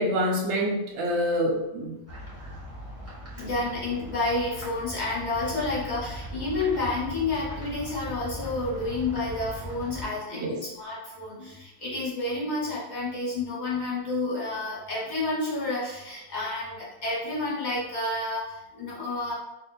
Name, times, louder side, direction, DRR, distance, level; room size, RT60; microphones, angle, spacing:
voice 1, 0.0-1.9 10.3-10.6, equal, 55° right, -1 dB, 0.8 m, -26 dB
sound 1, 2.1-10.1, right 1 dB, 15° right, 0.5 m, -39 dB
voice 2, 3.4-19.3, left 2 dB, 30° left, -7 dB, 1.1 m, -30 dB
2.7 x 2.6 x 4.1 m, 0.95 s
omnidirectional pair, 1.9 m